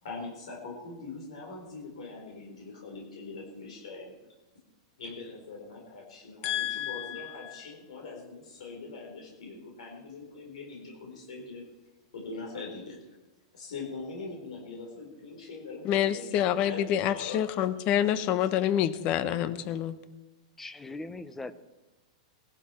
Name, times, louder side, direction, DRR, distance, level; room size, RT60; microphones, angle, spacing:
voice 1, 0.0-4.2 5.0-11.6 12.1-13.0 13.5-17.4 18.1-18.5 19.2-19.6, left 3 dB, 85° left, 4.1 m, -42 dB
voice 2, 6.4-7.3 15.8-20.0, left 10 dB, 35° left, 1.0 m, -27 dB
voice 3, 20.6-21.5, left 2 dB, 10° left, 0.7 m, -40 dB
19.5 x 12.0 x 4.4 m
supercardioid pair, 145°, 3 cm